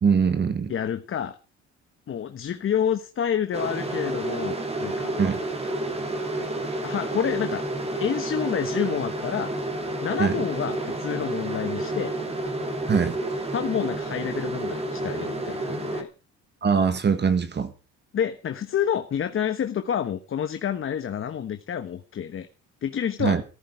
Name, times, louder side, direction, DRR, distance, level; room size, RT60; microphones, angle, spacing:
voice 1, 0.0-0.7 5.2-5.4 10.2-10.3 12.9-13.2 16.6-17.7 23.2-23.4, right 6 dB, 35° right, 9 dB, 1.8 m, -22 dB
voice 2, 0.7-1.4 2.1-5.1 6.7-7.6 8.0-9.5 10.0-12.1 13.5-16.1 18.1-22.5 22.8-23.4, left 9 dB, 45° left, 9 dB, 1.3 m, -28 dB
sound 1, 3.5-16.0, right 2 dB, 20° right, 3.0 m, -30 dB
14.5 x 14.0 x 4.8 m, 0.34 s
cardioid pair, 105°, 29 cm